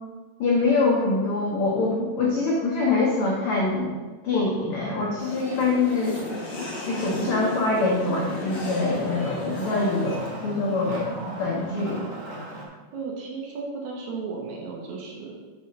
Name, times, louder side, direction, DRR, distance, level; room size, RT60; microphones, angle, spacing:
voice 1, 0.4-3.9 4.2-6.3 6.8-11.1 11.4-12.0, left 3 dB, 75° left, -4 dB, 1.2 m, -24 dB
sound 1, 5.2-10.2, left 3 dB, 40° left, 1.8 m, -34 dB
Wood, 6.2-12.7, right 1 dB, 55° right, 1.2 m, -39 dB
voice 2, 12.9-15.3, right 4 dB, 70° right, -1 dB, 2.3 m, -34 dB
5.4 x 4.7 x 5.2 m, 1.3 s
omnidirectional pair, 3.7 m